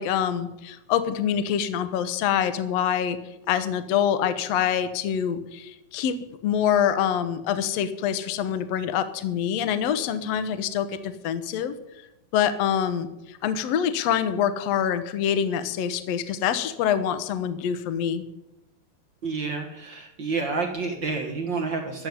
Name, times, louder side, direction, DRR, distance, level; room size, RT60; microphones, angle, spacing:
voice 1, 0.0-3.2 3.5-6.2 6.4-11.7 12.3-18.2, left 9 dB, 70° left, 11 dB, 1.7 m, -25 dB
voice 2, 19.2-22.1, right 4 dB, 55° right, 3 dB, 1.2 m, -29 dB
14.0 x 7.0 x 9.4 m, 0.93 s
omnidirectional pair, 4.1 m